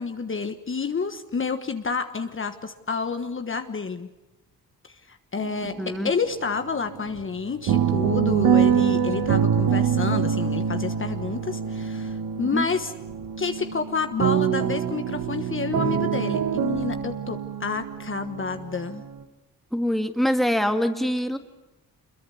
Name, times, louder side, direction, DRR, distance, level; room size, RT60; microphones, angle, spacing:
voice 1, 0.0-4.1 5.1-12.9 13.4-19.0, left 5 dB, 35° left, 7 dB, 1.3 m, -29 dB
sound 1, 5.4-6.2 6.4-19.2, right 8 dB, 80° right, 1.6 m, -25 dB
voice 2, 5.8-6.1 12.5-12.7 19.7-21.4, equal, ahead, 7 dB, 1.8 m, -24 dB
26.0 x 22.0 x 7.1 m, 1.0 s
cardioid pair, 90°, 35 cm